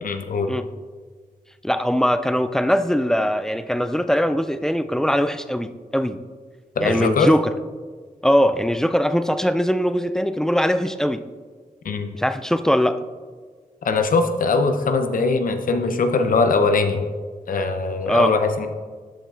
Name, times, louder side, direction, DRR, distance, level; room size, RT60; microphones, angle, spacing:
voice 1, 0.0-0.5 6.8-7.3 11.8-12.1 13.8-17.0 17.5-18.7, left 4 dB, 75° left, 7 dB, 0.7 m, -21 dB
voice 2, 1.6-6.2 6.8-7.5 8.2-11.2 12.1-13.0 18.1-18.3, equal, 5° left, 11 dB, 0.3 m, -21 dB
12.5 x 7.3 x 2.5 m, 1.5 s
wide cardioid pair, 115°, 14 cm